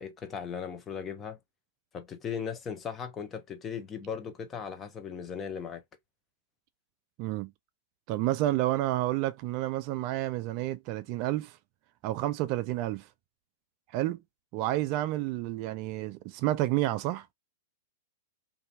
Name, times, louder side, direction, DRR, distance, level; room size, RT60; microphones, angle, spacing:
voice 1, 0.0-1.4 1.9-5.8, left 7 dB, 25° left, 0.7 m, -37 dB
voice 2, 7.2-7.5 8.1-11.6 12.0-13.1 13.9-14.2 14.5-17.3, right 15 dB, 45° right, 0.3 m, -30 dB
2.6 x 2.6 x 2.5 m
hypercardioid pair, 105°, 0 cm